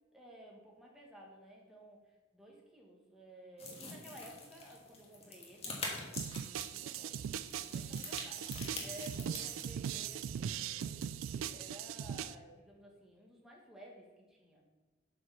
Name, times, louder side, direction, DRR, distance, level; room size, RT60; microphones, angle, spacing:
voice 1, 0.1-7.3 7.6-8.4 8.8-14.6, equal, 5° right, -3 dB, 1.6 m, -55 dB
sound 1, 3.6-9.7, left 3 dB, 30° left, 1.6 m, -45 dB
sound 2, 6.2-12.3, right 8 dB, 90° right, 0.3 m, -40 dB
7.8 x 4.9 x 5.7 m, 1.2 s
head